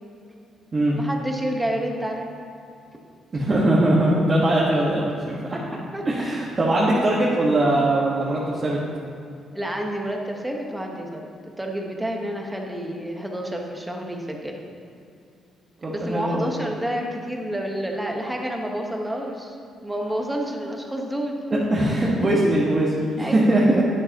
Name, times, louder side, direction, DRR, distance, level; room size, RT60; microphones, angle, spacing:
voice 1, 0.9-2.3 5.5-5.6 5.9-6.0 9.5-11.3 11.6-14.6 15.8-19.6 19.8-21.7 23.2-23.6, right 1 dB, 10° right, 1 dB, 1.3 m, -29 dB
voice 2, 3.3-5.6 6.0-8.8 15.8-16.5 21.5-23.8, right 1 dB, 30° right, -7 dB, 1.6 m, -21 dB
11.5 x 10.0 x 3.0 m, 2.5 s
cardioid pair, 105°, 0 cm